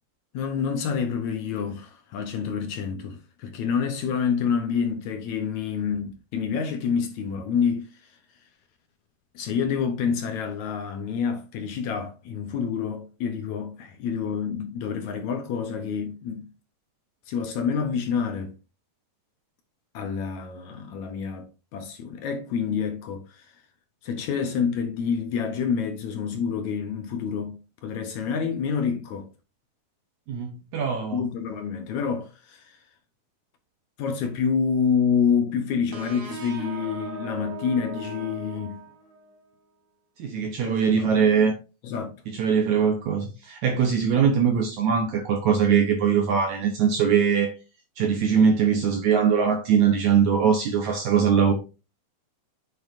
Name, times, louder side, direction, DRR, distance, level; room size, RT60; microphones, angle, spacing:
voice 1, 0.3-8.2 9.3-16.5 17.3-18.6 19.9-23.6 24.0-29.3 31.1-32.8 34.0-38.8 40.6-41.1 41.8-42.1, left 6 dB, 70° left, 1.9 m, -28 dB
voice 2, 30.3-31.2 40.2-41.6 42.3-47.5 48.0-51.5, right 7 dB, 70° right, 2.0 m, -21 dB
sound 1, 35.9-39.4, right 3 dB, 50° right, 1.9 m, -38 dB
8.9 x 6.3 x 2.6 m
omnidirectional pair, 4.1 m